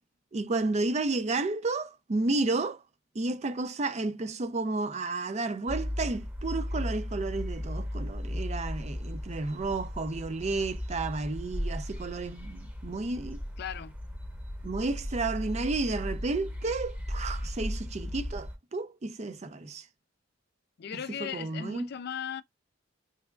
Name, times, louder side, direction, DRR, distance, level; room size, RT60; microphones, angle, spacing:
voice 1, 0.3-2.8 3.1-13.4 14.6-19.8 21.2-21.9, right 3 dB, 35° right, 0.5 m, -32 dB
sound 1, 5.7-18.6, equal, 10° right, 0.8 m, -36 dB
voice 2, 13.6-13.9 20.8-22.4, left 8 dB, 55° left, 0.4 m, -37 dB
3.4 x 3.2 x 2.3 m
head